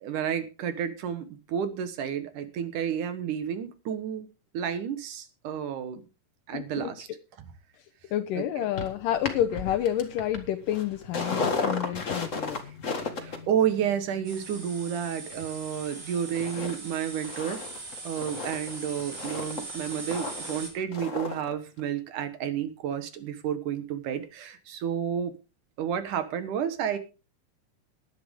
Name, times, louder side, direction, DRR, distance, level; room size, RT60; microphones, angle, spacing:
voice 1, 0.0-4.3 4.5-6.0 6.5-7.1 8.4-8.7 13.2-17.6 18.0-25.3 25.8-27.0, right 9 dB, 65° right, 10 dB, 2.7 m, -31 dB
voice 2, 6.5-6.9 8.1-12.6, left 11 dB, 75° left, 6 dB, 2.4 m, -29 dB
sound 1, 8.8-16.0 16.3-16.8 17.0-21.5 21.8-21.9, left 4 dB, 35° left, 1.2 m, -35 dB
sound 2, 14.2-20.7, right 3 dB, 30° right, 3.7 m, -41 dB
18.0 x 11.0 x 3.6 m, 0.32 s
omnidirectional pair, 4.0 m